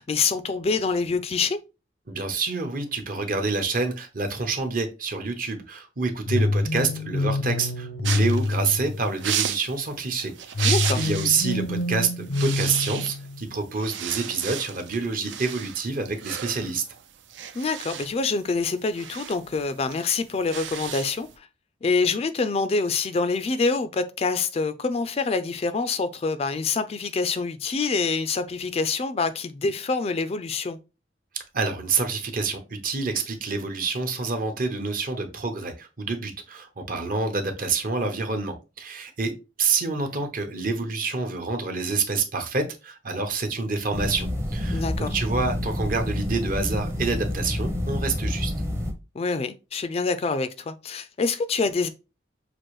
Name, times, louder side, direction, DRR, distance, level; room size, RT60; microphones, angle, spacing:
voice 1, 0.0-1.6 10.6-11.1 17.5-21.5 21.8-30.8 44.7-45.2 49.1-51.9, left 4 dB, 35° left, 0.3 m, -26 dB
voice 2, 2.1-10.3 10.6-16.8 31.3-39.3 39.6-48.5, right 4 dB, 45° right, 0.8 m, -27 dB
sound 1, 6.3-9.4 10.5-13.5, left 2 dB, 90° left, 0.7 m, -26 dB
sound 2, 8.0-11.4 11.7-11.9 12.2-13.4 13.7-21.3, right 10 dB, 80° right, 0.5 m, -33 dB
sound 3, 43.9-48.9, left 1 dB, 15° right, 0.6 m, -28 dB
6.0 x 2.5 x 3.1 m
head